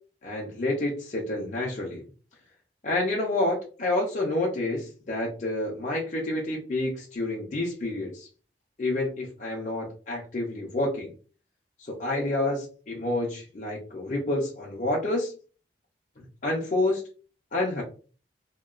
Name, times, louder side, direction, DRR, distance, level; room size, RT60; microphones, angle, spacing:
voice 1, 0.2-2.1 2.8-8.3 8.8-11.1 11.8-15.3 16.2-17.0 17.5-17.8, left 2 dB, 45° left, -2 dB, 0.5 m, -29 dB
2.8 x 2.2 x 2.3 m, 0.38 s
head